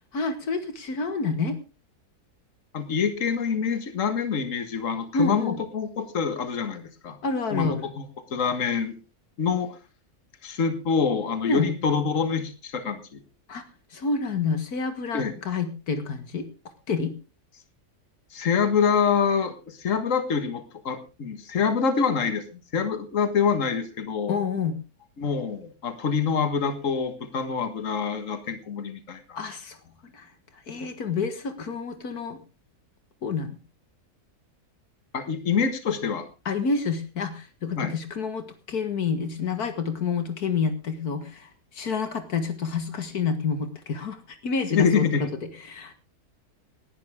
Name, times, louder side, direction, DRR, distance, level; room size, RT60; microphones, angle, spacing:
voice 1, 0.1-1.6 5.1-5.6 7.2-7.9 11.4-11.7 13.5-13.6 13.9-16.5 16.9-17.1 24.3-24.8 29.4-29.8 30.1-30.3 30.7-32.4 33.2-33.6 36.5-45.0 45.4-45.9, left 4 dB, 80° left, 9 dB, 2.1 m, -28 dB
voice 2, 2.7-7.2 7.5-8.0 8.3-8.9 9.4-9.8 10.4-13.0 15.1-15.3 18.3-22.4 22.7-24.3 25.2-29.4 35.1-36.2 37.8-38.0 44.7-45.3, left 6 dB, 55° left, 9 dB, 2.0 m, -26 dB
19.0 x 11.5 x 3.6 m, 0.31 s
omnidirectional pair, 1.6 m